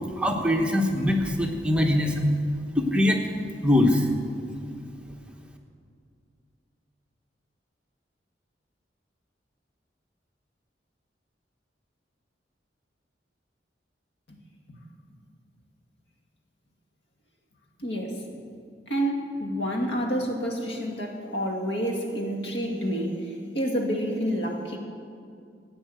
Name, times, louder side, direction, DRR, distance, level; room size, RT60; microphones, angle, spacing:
voice 1, 0.2-2.3 2.8-3.2 3.6-4.1, left 1 dB, 5° right, 1 dB, 1.1 m, -22 dB
voice 2, 17.8-18.3 18.9-24.8, equal, 80° left, 1 dB, 2.3 m, -29 dB
15.0 x 9.2 x 7.8 m, 2.3 s
head